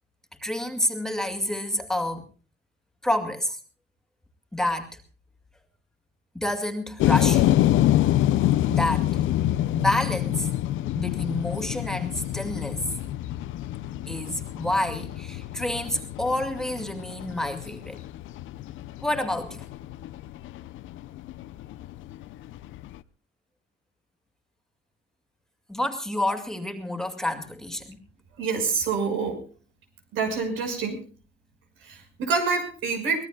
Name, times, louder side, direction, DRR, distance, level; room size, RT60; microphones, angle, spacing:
voice 1, 0.4-2.3 3.0-3.6 4.5-5.0 6.3-7.6 8.7-9.1 9.8-10.5 11.0-12.9 14.1-18.0 19.0-19.7 25.7-28.0, left 1 dB, 5° left, 4 dB, 2.3 m, -28 dB
sound 1, 7.0-23.0, left 13 dB, 80° left, 0.7 m, -27 dB
voice 2, 28.4-29.4 30.1-31.0 31.8-33.2, right 5 dB, 90° right, 5 dB, 5.9 m, -27 dB
24.0 x 18.5 x 2.3 m, 0.37 s
cardioid pair, 115°, 20 cm